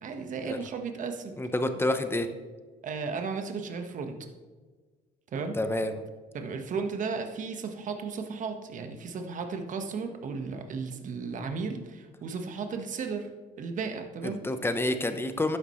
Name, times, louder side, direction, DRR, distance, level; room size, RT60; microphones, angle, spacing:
voice 1, 0.0-1.4 2.8-4.2 5.3-5.6 6.3-13.3 13.6-14.4, right 5 dB, 50° right, 5 dB, 1.5 m, -34 dB
voice 2, 1.4-2.3 5.5-5.9 14.2-15.6, left 1 dB, 15° left, 8 dB, 1.0 m, -28 dB
12.0 x 10.0 x 3.2 m, 1.4 s
cardioid pair, 110°, 17 cm